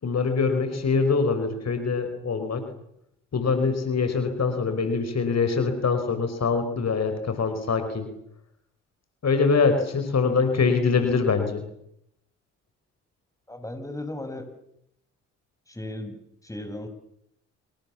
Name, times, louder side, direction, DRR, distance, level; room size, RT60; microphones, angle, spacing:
voice 1, 0.0-2.6 3.3-8.1 9.2-11.6, left 4 dB, 45° left, 8 dB, 5.2 m, -24 dB
voice 2, 13.5-14.5 15.7-16.2 16.4-16.9, left 1 dB, 10° left, 7 dB, 7.0 m, -35 dB
28.0 x 26.0 x 7.3 m, 0.77 s
hypercardioid pair, 50°, 35 cm